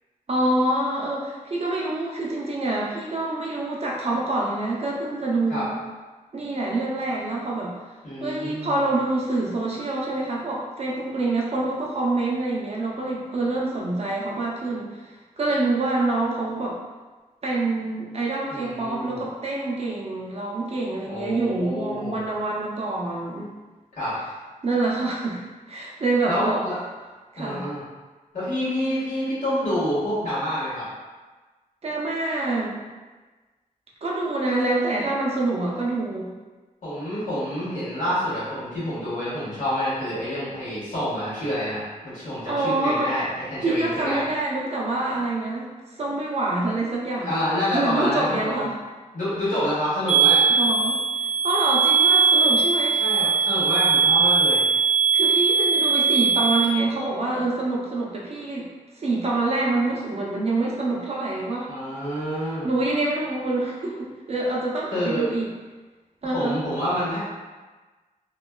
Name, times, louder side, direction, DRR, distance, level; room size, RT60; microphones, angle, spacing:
voice 1, 0.3-5.8 6.3-7.8 8.2-16.8 17.4-23.5 24.6-25.4 25.7-26.6 27.3-27.7 31.8-32.9 34.0-36.3 42.5-43.2 43.6-45.7 46.0-47.5 47.7-48.7 50.6-51.0 51.4-53.0 55.1-58.7 59.0-61.7 62.6-65.5 66.2-66.6, right 2 dB, 45° right, -3 dB, 0.5 m, -26 dB
voice 2, 8.0-8.8 18.5-19.2 21.0-22.2 23.9-24.1 26.3-26.8 27.4-27.8 28.3-30.8 36.8-44.2 47.2-48.6 49.1-50.4 53.0-54.6 61.7-62.7 64.9-65.3 66.2-67.2, equal, 65° left, -10 dB, 1.5 m, -27 dB
sound 1, 50.1-56.6, right 5 dB, 35° left, 0.5 m, -20 dB
3.0 x 2.2 x 2.2 m, 1.3 s
wide cardioid pair, 125°, 14 cm